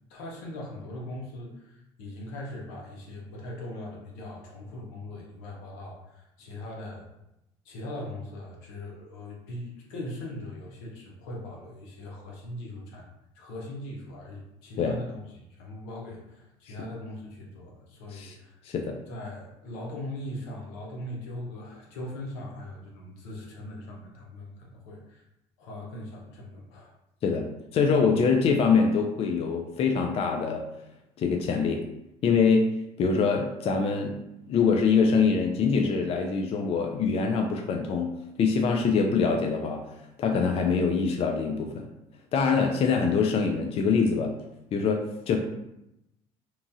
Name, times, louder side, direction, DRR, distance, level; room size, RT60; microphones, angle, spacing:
voice 1, 0.1-7.1 7.6-13.1 13.3-18.6 19.1-25.2 25.6-26.9, left 1 dB, 85° left, -1 dB, 0.8 m, -40 dB
voice 2, 18.6-19.0 27.2-27.5 27.7-30.6 31.2-31.8 32.2-32.7 33.0-34.2 34.5-38.1 38.4-39.8 40.2-41.9 42.3-44.3 44.7-45.4, left 5 dB, 45° left, 3 dB, 0.4 m, -24 dB
2.9 x 2.3 x 2.6 m, 0.85 s
supercardioid pair, 85°, 14 cm